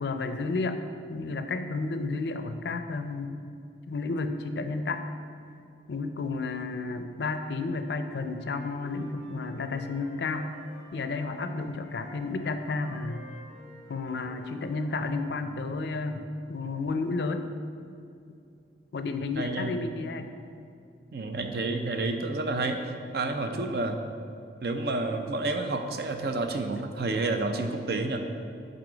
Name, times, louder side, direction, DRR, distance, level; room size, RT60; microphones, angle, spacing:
voice 1, 0.0-3.4 3.9-5.0 5.9-10.5 10.9-13.2 13.9-17.4 18.9-20.3, left 3 dB, 65° left, 8 dB, 0.4 m, -32 dB
Wind instrument woodwind instrument, 8.3-15.3, left 1 dB, 5° left, 1.3 m, -50 dB
voice 2, 19.4-19.7 21.1-24.0 24.6-28.2, right 2 dB, 55° right, 5 dB, 0.5 m, -30 dB
8.0 x 3.9 x 3.9 m, 2.5 s
head